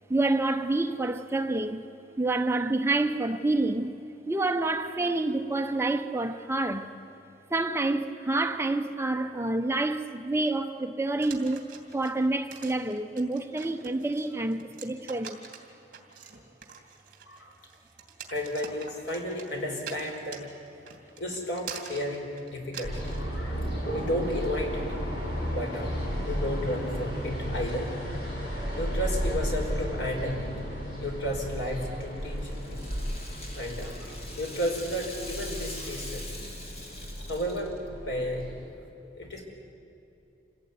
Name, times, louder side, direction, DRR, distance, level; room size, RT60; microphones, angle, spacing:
voice 1, 0.1-1.8 2.2-3.9 4.3-6.9 7.5-15.4, right 2 dB, 15° right, 0.8 m, -28 dB
sound 1, 11.2-23.3, right 6 dB, 50° right, 2.7 m, -45 dB
voice 2, 18.3-20.5 21.2-23.7 23.9-24.9 25.5-27.9 28.8-30.5 31.0-32.9 33.5-36.3 37.3-37.7 38.0-38.8 39.1-39.5, equal, 85° left, 4.7 m, -33 dB
sound 2, 22.8-38.7, equal, 65° left, 6.6 m, -34 dB
Rattle (instrument), 31.7-37.9, left 1 dB, 35° left, 2.8 m, -44 dB
27.5 x 17.0 x 9.6 m
head